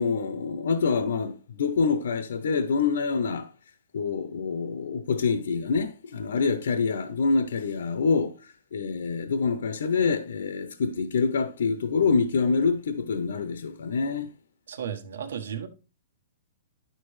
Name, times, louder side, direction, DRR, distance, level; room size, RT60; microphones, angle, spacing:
voice 1, 0.0-3.5 3.9-14.3, left 5 dB, 80° left, 0.8 m, -26 dB
voice 2, 14.7-15.7, right 8 dB, 85° right, 1.2 m, -34 dB
9.6 x 6.7 x 3.2 m
hypercardioid pair, 165°, 0 cm